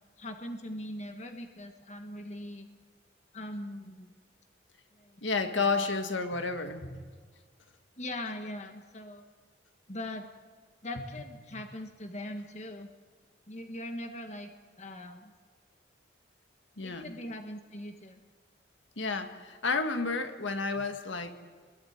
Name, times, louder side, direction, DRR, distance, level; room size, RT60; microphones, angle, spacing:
voice 1, 0.2-2.7 3.3-4.1 4.9-6.3 8.0-9.2 9.9-10.3 10.8-12.9 13.5-14.5 14.8-15.3 16.8-18.2, left 1 dB, 35° left, 5 dB, 1.5 m, -41 dB
voice 2, 5.2-7.1 11.5-11.6 16.8-17.1 19.0-21.3, left 4 dB, 80° left, 6 dB, 1.9 m, -31 dB
29.0 x 21.5 x 9.5 m, 1.5 s
head